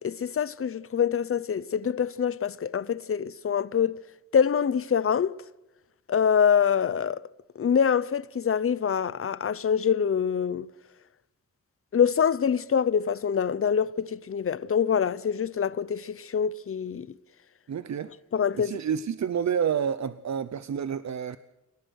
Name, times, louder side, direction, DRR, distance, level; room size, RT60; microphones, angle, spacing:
voice 1, 0.0-4.0 4.3-5.4 6.1-7.3 7.6-10.7 11.9-17.1 18.3-18.8, left 7 dB, 50° left, 0.7 m, -25 dB
voice 2, 17.7-18.1 18.5-21.4, right 8 dB, 65° right, 0.8 m, -29 dB
29.0 x 18.0 x 6.4 m
wide cardioid pair, 150°, 29 cm